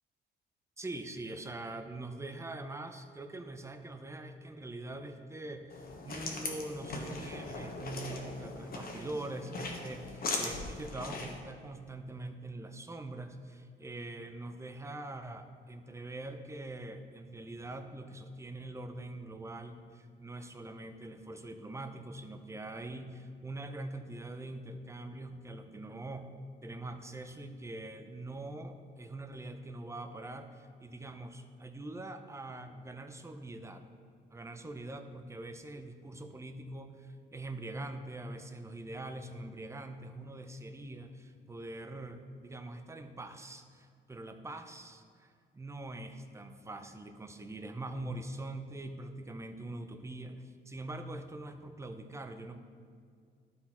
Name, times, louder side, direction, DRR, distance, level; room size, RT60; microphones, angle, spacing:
voice 1, 0.8-26.3 26.6-33.8 34.3-52.6, right 2 dB, 15° right, 7 dB, 0.6 m, -43 dB
sound 1, 5.7-11.4, left 3 dB, 50° left, 1.2 m, -39 dB
12.0 x 4.1 x 4.3 m, 2.1 s
cardioid pair, 90°, 20 cm